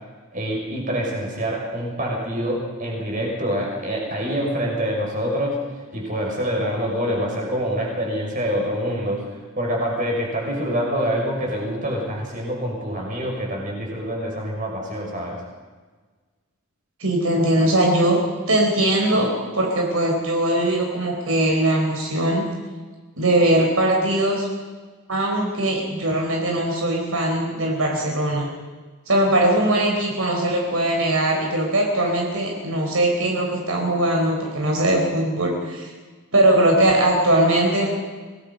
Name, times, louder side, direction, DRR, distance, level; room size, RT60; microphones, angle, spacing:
voice 1, 0.3-5.6 5.9-15.4, equal, 35° right, -1 dB, 6.0 m, -26 dB
voice 2, 17.0-18.2 18.5-19.3 19.5-22.5 23.2-24.5 25.1-28.5 29.1-35.9 36.3-37.9, right 1 dB, 70° right, 0 dB, 4.3 m, -20 dB
25.5 x 19.0 x 5.4 m, 1.4 s
head